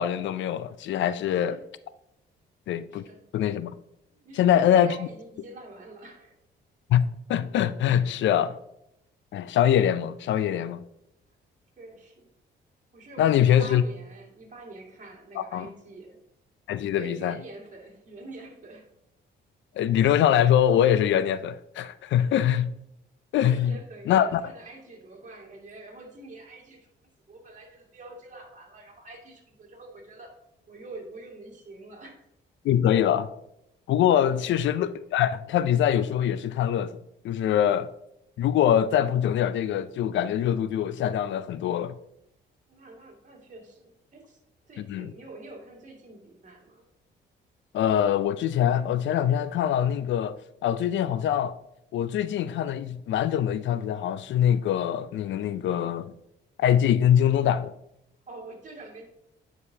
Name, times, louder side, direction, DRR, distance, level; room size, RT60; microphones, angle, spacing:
voice 1, 0.0-1.6 2.7-3.0 3.3-3.7 4.4-5.1 6.9-8.6 9.3-10.8 13.2-13.8 15.4-15.7 16.7-17.4 19.8-22.7 23.3-23.8 24.1-24.4 32.6-33.3 33.9-37.9 38.4-42.0 44.8-45.1 47.7-51.6 51.9-56.1 56.6-57.7, left 10 dB, 70° left, 0.4 m, -23 dB
voice 2, 1.2-1.6 2.9-3.2 4.1-6.4 11.8-12.3 12.9-16.2 16.9-18.9 22.2-22.4 23.5-30.3 30.7-32.3 34.3-34.5 42.7-44.4 44.7-46.8 58.3-59.1, right 2 dB, 40° right, 2.1 m, -46 dB
9.5 x 4.9 x 2.7 m
cardioid pair, 90°, 20 cm